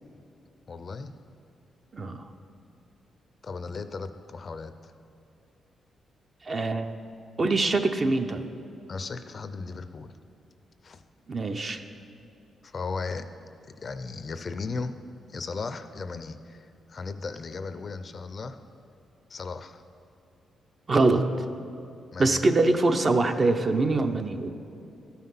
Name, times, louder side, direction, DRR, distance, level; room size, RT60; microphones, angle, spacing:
voice 1, 0.7-1.1 3.4-4.9 8.9-10.1 10.8-11.0 12.6-13.3 13.6-15.0 15.3-18.6 19.3-19.8 22.1-22.5, left 4 dB, 45° left, 11 dB, 0.4 m, -36 dB
voice 2, 6.5-6.9 7.4-8.4 11.3-11.8 20.9-21.3 22.2-24.5, right 3 dB, 35° right, 7 dB, 0.6 m, -23 dB
13.0 x 5.7 x 5.6 m, 2.8 s
cardioid pair, 100°, 0 cm